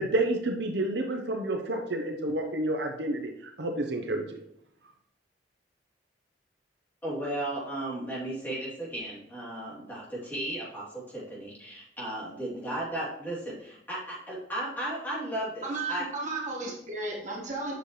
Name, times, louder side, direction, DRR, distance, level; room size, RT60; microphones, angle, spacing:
voice 1, 0.0-4.4, right 1 dB, 65° right, 4 dB, 0.7 m, -30 dB
voice 2, 7.0-16.0, right 1 dB, 10° left, -8 dB, 3.3 m, -35 dB
voice 3, 15.6-17.7, right 3 dB, 40° right, -2 dB, 1.7 m, -34 dB
8.1 x 6.3 x 3.2 m, 0.74 s
head